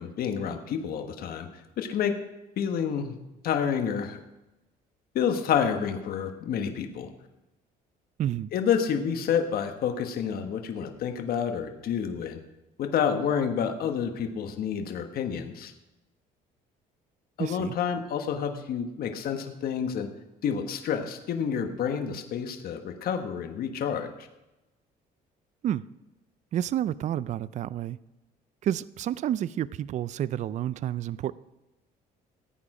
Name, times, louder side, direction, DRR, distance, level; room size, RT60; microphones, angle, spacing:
voice 1, 0.0-2.2 2.6-3.2 3.4-4.2 5.1-7.1 8.5-12.4 12.8-15.7 17.4-20.1 20.4-24.3, left 7 dB, 65° left, 6 dB, 1.4 m, -29 dB
voice 2, 8.2-8.5 17.4-17.7 25.6-25.8 26.5-28.0 28.6-31.3, right 11 dB, 45° right, 18 dB, 0.4 m, -30 dB
15.5 x 8.7 x 4.9 m, 0.99 s
cardioid pair, 110°, 17 cm